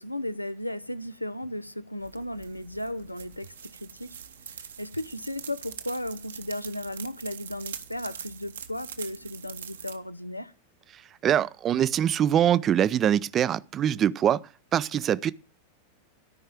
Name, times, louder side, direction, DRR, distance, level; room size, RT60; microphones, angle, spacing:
voice 1, 0.0-4.1 4.8-10.5, left 1 dB, 85° left, 0.6 m, -35 dB
sound 1, 2.0-10.0, right 8 dB, 65° right, 1.1 m, -43 dB
voice 2, 10.9-14.4 14.7-15.3, right 10 dB, 30° right, 0.5 m, -24 dB
13.5 x 5.5 x 7.5 m
figure-of-eight pair, 90°, 0 cm